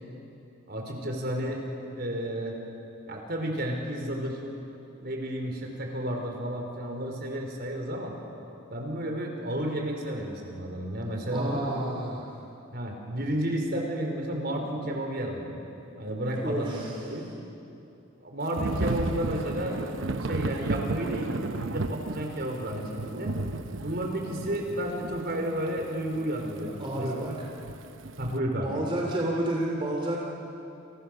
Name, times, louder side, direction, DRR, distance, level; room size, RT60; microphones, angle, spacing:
voice 1, 0.7-1.6 2.0-2.5 3.1-4.4 5.0-8.1 8.7-11.7 12.7-15.6 16.0-17.2 18.2-19.8 20.2-23.3 23.8-27.4 28.2-28.8, right 1 dB, 50° right, 2 dB, 4.8 m, -32 dB
voice 2, 11.3-12.3 16.4-17.2 26.8-27.5 28.6-30.2, right 1 dB, 25° right, -2 dB, 2.9 m, -30 dB
Thunder / Rain, 18.6-28.4, right 2 dB, 70° right, 0.9 m, -34 dB
29.5 x 29.0 x 6.8 m, 2.8 s
head